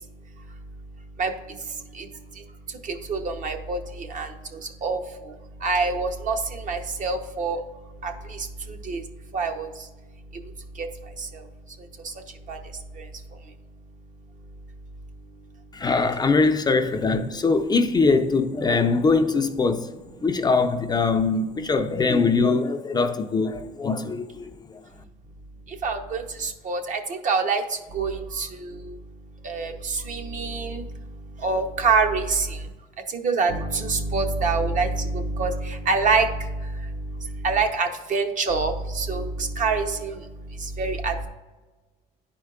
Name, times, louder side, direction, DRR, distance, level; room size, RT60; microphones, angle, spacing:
voice 1, 3.1-4.3 4.8-5.0 5.6-7.6 8.0-8.4 8.8-9.0 9.3-9.7 10.8-10.9 12.5-12.6 25.8-27.6 27.9-28.9 29.4-30.8 31.4-32.6 33.2-36.3 37.4-40.2 40.8-41.3, right 4 dB, 50° right, 0.8 m, -25 dB
voice 2, 15.7-19.9 20.2-24.8, left 4 dB, 25° left, 0.4 m, -22 dB
10.5 x 4.5 x 2.4 m
cardioid pair, 110°, 17 cm